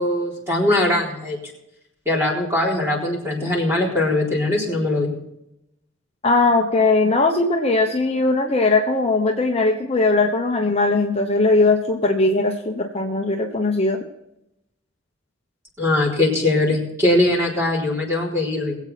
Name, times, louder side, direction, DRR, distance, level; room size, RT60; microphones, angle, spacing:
voice 1, 0.0-1.4 2.1-5.1 15.8-18.8, left 1 dB, 15° right, -3 dB, 4.1 m, -21 dB
voice 2, 6.2-14.0, left 3 dB, 30° left, 2 dB, 1.0 m, -19 dB
21.5 x 8.3 x 4.2 m, 0.84 s
head